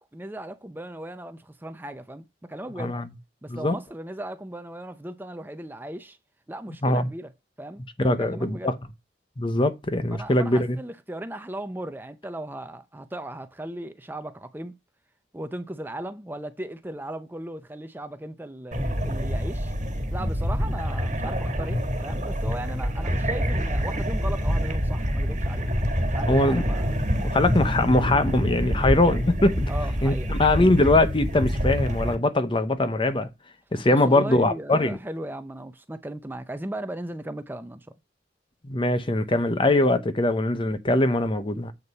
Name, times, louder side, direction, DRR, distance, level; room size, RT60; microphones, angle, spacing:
voice 1, 0.1-3.0 3.4-6.2 6.5-7.3 7.6-7.8 8.1-8.7 10.1-14.7 15.3-19.7 20.1-25.7 26.1-26.9 29.7-30.3 33.7-37.9, right 1 dB, 10° right, 0.5 m, -37 dB
voice 2, 8.0-8.7 9.4-10.8 26.3-26.6 27.3-29.7 30.0-33.3 33.7-35.0 38.6-41.7, left 2 dB, 30° left, 0.8 m, -22 dB
sound 1, 18.7-32.2, equal, 40° right, 1.6 m, -26 dB
8.1 x 4.1 x 5.4 m
head